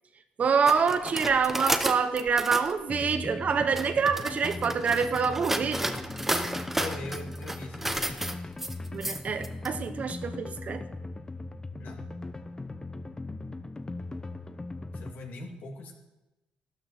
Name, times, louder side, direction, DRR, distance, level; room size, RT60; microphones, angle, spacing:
voice 1, 0.4-5.9 8.9-10.8, right 5 dB, 50° right, 9 dB, 1.1 m, -26 dB
sound 1, 0.7-2.7 3.5-9.7, right 1 dB, 10° right, 1.0 m, -32 dB
sound 2, 2.9-15.1, left 2 dB, 20° left, 0.9 m, -39 dB
voice 2, 6.8-8.1 11.8-12.0 14.9-15.9, left 2 dB, 75° left, 0 dB, 2.8 m, -41 dB
13.0 x 12.0 x 4.5 m, 1.0 s
supercardioid pair, 70°, 3 cm